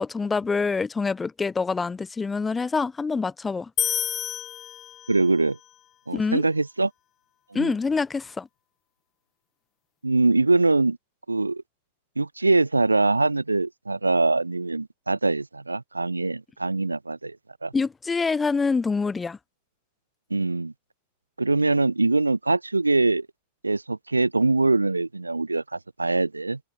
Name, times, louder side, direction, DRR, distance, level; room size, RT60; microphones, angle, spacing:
voice 1, 0.0-3.7 6.1-6.4 7.5-8.5 17.7-19.4, left 4 dB, 15° left, 5.3 m, -26 dB
sound 1, 3.8-5.4, left 11 dB, 30° left, 4.2 m, -29 dB
voice 2, 5.1-5.6 6.1-6.9 7.5-7.7 10.0-11.0 11.3-11.6 12.2-17.4 17.6-17.7 20.3-20.7 21.4-23.3 23.6-26.6, right 3 dB, 80° right, 4.2 m, -23 dB
figure-of-eight pair, 90°, 0 cm